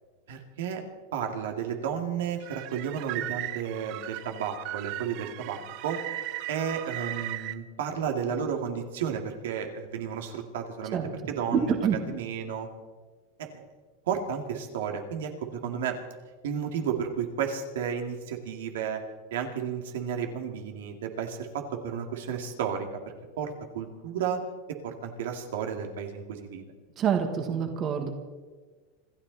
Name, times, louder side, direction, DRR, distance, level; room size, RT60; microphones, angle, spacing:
voice 1, 0.3-0.8 1.1-6.0 6.5-11.0 11.3-11.7 12.1-12.7 13.4-13.6 14.1-16.0 16.4-19.0 19.3-22.9 23.4-24.4 24.8-26.6, right 7 dB, 80° right, 3 dB, 2.4 m, -32 dB
sound 1, 2.4-7.6, right 15 dB, 45° right, 0.8 m, -37 dB
voice 2, 10.9-12.0 27.0-28.1, right 7 dB, 30° right, 5 dB, 1.6 m, -27 dB
27.0 x 13.0 x 4.2 m, 1.4 s
supercardioid pair, 155°, 0 cm